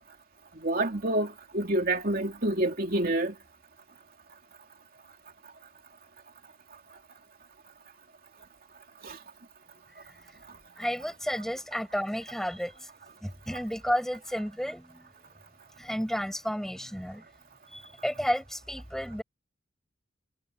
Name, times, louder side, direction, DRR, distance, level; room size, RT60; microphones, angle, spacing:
voice 1, 0.6-3.3 9.0-9.2, right 1 dB, 50° right, 3.0 m, -28 dB
voice 2, 10.8-12.9 13.2-15.1 15.8-17.3 17.7-19.2, equal, ahead, 5.9 m, -32 dB
head